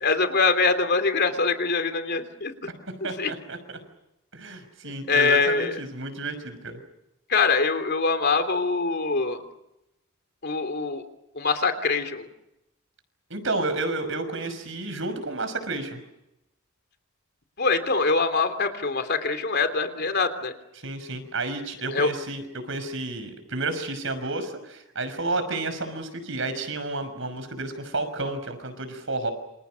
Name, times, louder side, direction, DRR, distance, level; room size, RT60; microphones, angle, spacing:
voice 1, 0.0-2.5 3.2-3.3 5.1-5.8 7.3-9.4 10.4-11.0 11.3-12.3 17.6-20.5 21.9-22.1, left 4 dB, 50° left, 8 dB, 3.1 m, -23 dB
voice 2, 3.0-3.6 4.3-6.8 13.3-16.0 20.8-29.3, right 2 dB, 65° right, 9 dB, 5.9 m, -31 dB
28.5 x 27.5 x 6.4 m, 0.89 s
head